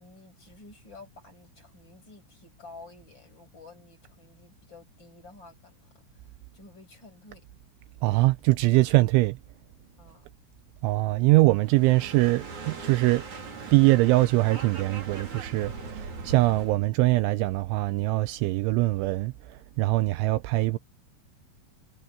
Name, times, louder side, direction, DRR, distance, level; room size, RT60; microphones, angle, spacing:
voice 1, 0.0-7.5 10.0-10.3, left 3 dB, 20° left, 7.4 m, -51 dB
voice 2, 8.0-9.4 10.8-13.2 13.7-20.8, right 20 dB, 85° right, 2.8 m, -23 dB
sound 1, 11.6-16.8, right 4 dB, 40° right, 4.7 m, -40 dB
omnidirectional pair, 5.8 m